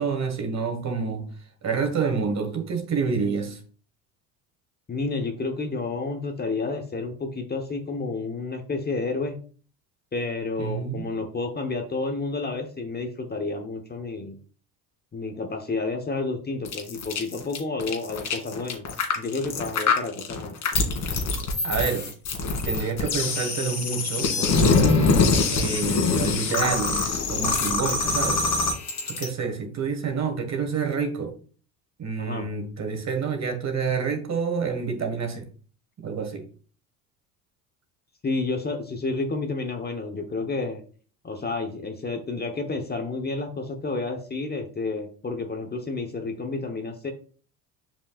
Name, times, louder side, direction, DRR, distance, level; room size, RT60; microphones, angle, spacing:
voice 1, 0.0-1.3 1.6-3.6 10.6-11.1 21.6-22.1 22.6-25.2 25.5-28.7 29.0-31.4 32.0-35.5 36.0-36.5, right 5 dB, 35° right, 1.8 m, -28 dB
voice 2, 4.9-9.4 10.1-14.4 15.1-18.8 19.2-20.6 32.2-32.5 38.2-40.8 41.2-47.1, left 3 dB, 20° left, 1.1 m, -30 dB
sound 1, 16.6-29.3, left 4 dB, 45° left, 2.2 m, -24 dB
7.3 x 5.3 x 2.4 m
hypercardioid pair, 75°, 44 cm